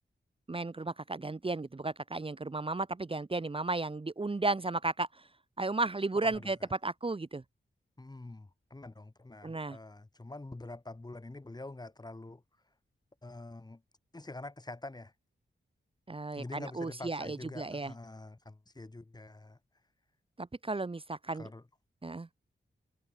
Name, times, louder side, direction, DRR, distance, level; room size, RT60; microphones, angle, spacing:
voice 1, 0.5-5.3 5.6-7.4 9.4-9.8 16.1-17.9 20.4-21.5 22.0-22.3, right 3 dB, 25° right, 1.1 m, -34 dB
voice 2, 8.0-12.4 13.2-13.8 14.1-15.1 16.3-19.6 21.3-21.6, left 2 dB, 20° left, 1.4 m, -46 dB
wide cardioid pair, 145°, 20 cm